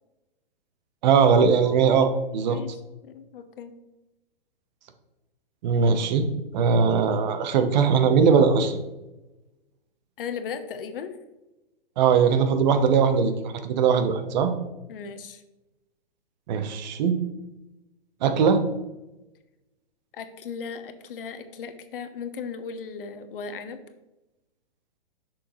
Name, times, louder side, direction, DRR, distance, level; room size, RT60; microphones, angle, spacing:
voice 1, 1.0-2.6 5.6-8.8 12.0-14.5 16.5-17.2 18.2-18.6, right 6 dB, 50° right, 8 dB, 1.0 m, -20 dB
voice 2, 3.0-3.7 10.2-11.1 14.9-15.4 20.1-23.8, left 6 dB, 65° left, 9 dB, 1.0 m, -36 dB
7.5 x 6.3 x 3.1 m, 1.0 s
hypercardioid pair, 125°, 30 cm